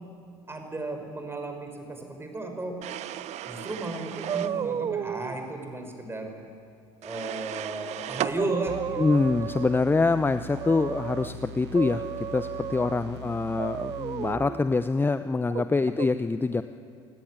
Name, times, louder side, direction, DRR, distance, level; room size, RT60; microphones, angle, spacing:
voice 1, 0.5-2.8 3.4-6.5 7.0-9.0 12.7-13.2 15.6-15.8, right 2 dB, 15° right, 4 dB, 6.0 m, -34 dB
sound 1, 2.8-4.6 7.0-8.4, right 12 dB, 50° right, 1.0 m, -35 dB
sound 2, 4.2-5.3 7.8-7.9 8.2-9.9 10.5-11.3 11.7-13.1 13.6-14.6 15.5-16.1, right 9 dB, 35° right, 0.6 m, -33 dB
sound 3, 8.7-14.7, equal, 70° right, 1.9 m, -42 dB
voice 2, 9.0-12.1 12.3-16.6, left 3 dB, 15° left, 11 dB, 0.8 m, -25 dB
27.5 x 17.5 x 9.6 m, 2.3 s
hypercardioid pair, 65°, 14 cm